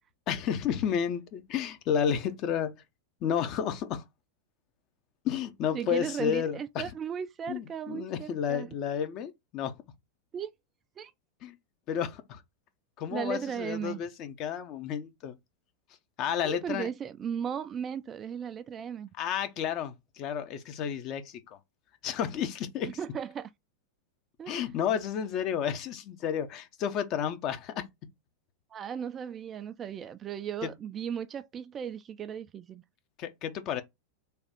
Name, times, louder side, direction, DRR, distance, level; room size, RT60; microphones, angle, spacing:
voice 1, 0.3-2.7 3.2-4.0 5.2-6.8 7.5-9.7 11.4-11.5 11.9-12.4 13.0-15.4 16.2-16.9 19.2-21.6 22.0-22.9 24.5-27.8 30.6-30.7 33.2-33.8, left 8 dB, 40° left, 0.6 m, -31 dB
voice 2, 5.7-8.7 10.3-10.5 11.0-11.1 13.1-14.0 16.4-19.1 22.8-23.5 24.4-24.5 28.7-32.8, right 8 dB, 25° right, 0.3 m, -36 dB
3.4 x 2.3 x 4.2 m
figure-of-eight pair, 90°, 0 cm